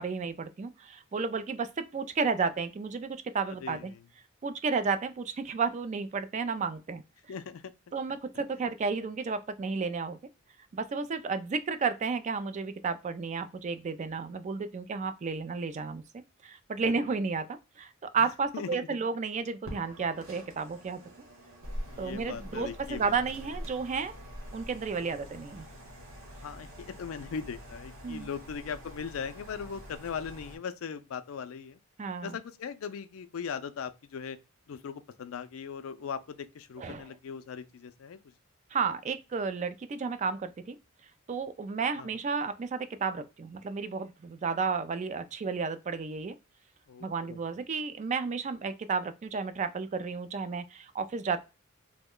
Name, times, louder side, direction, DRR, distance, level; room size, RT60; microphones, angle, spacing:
voice 1, 0.0-3.9 4.4-7.0 7.9-10.2 10.7-16.0 16.4-21.0 22.0-24.1 24.5-25.7 28.0-28.3 32.0-32.4 36.8-37.1 38.7-40.8 41.3-46.3 47.0-51.4, right 5 dB, 35° right, 0.3 m, -32 dB
voice 2, 7.3-7.6 16.8-17.1 18.5-18.8 21.9-23.1 26.4-31.8 32.2-34.4 34.7-38.2 42.0-42.1 46.9-47.4, left 6 dB, 75° left, 0.4 m, -39 dB
sound 1, 19.6-30.6, equal, 85° right, 1.1 m, -45 dB
3.0 x 2.1 x 3.6 m
head